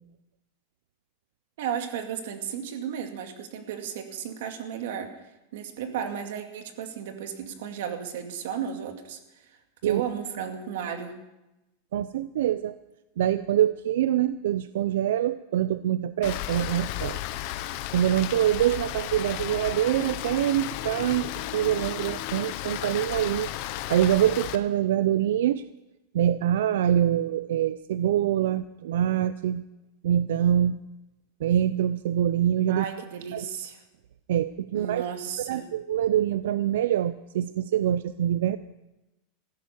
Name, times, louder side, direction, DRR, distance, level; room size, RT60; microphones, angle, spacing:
voice 1, 1.6-5.1 5.5-9.2 9.8-11.1 32.7-33.8 34.7-35.6, right 8 dB, 70° right, 5 dB, 2.3 m, -34 dB
voice 2, 11.9-12.7 13.2-17.2 17.9-23.5 23.9-25.6 26.1-29.6 30.0-30.8 31.4-32.8 33.3-33.5 34.3-35.0 35.5-38.6, right 11 dB, 85° right, 14 dB, 0.5 m, -25 dB
Rain, 16.2-24.6, left 14 dB, 45° left, 0.9 m, -34 dB
15.5 x 12.0 x 7.0 m, 0.99 s
supercardioid pair, 170°, 0 cm